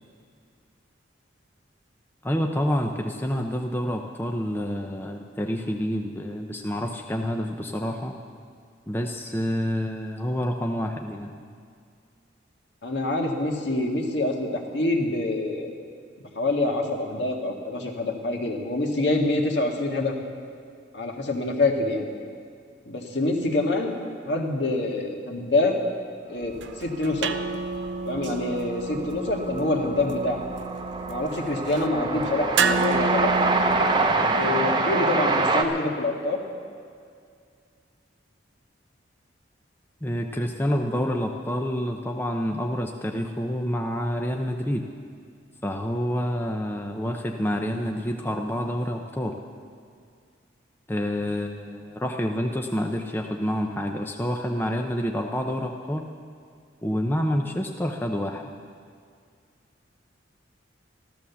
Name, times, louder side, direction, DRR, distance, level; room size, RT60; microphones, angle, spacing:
voice 1, 2.2-8.1 8.9-11.3 40.0-44.9 45.6-49.4 50.9-56.1 56.8-58.4, equal, 10° left, 2 dB, 0.6 m, -28 dB
voice 2, 12.8-15.7 16.4-20.1 20.9-22.1 22.9-23.9 24.2-25.7 26.3-27.3 28.1-30.4 31.1-33.3 34.3-36.4, left 2 dB, 65° left, 1 dB, 1.9 m, -26 dB
sound 1, 26.4-34.4, right 5 dB, 70° right, 0.6 m, -31 dB
Train, 28.2-28.3 28.5-35.6, right 3 dB, 25° right, 0.8 m, -25 dB
14.0 x 12.5 x 7.0 m, 2.2 s
head